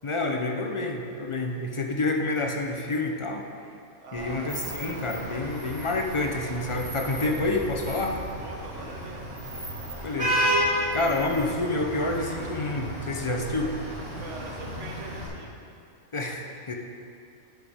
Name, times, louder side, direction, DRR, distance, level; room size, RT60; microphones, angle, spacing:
voice 1, 0.0-3.5 4.1-8.2 10.0-10.4 10.9-13.7 16.1-16.7, left 2 dB, 30° left, 2 dB, 0.6 m, -28 dB
voice 2, 4.0-4.9 8.4-9.3 12.4-12.5 14.1-15.5, right 4 dB, 70° right, 0 dB, 1.4 m, -43 dB
Vehicle horn car horn honking / Traffic noise roadway noise, 4.1-15.3, equal, 50° right, 2.2 m, -32 dB
10.5 x 8.4 x 3.6 m, 2.5 s
omnidirectional pair, 1.3 m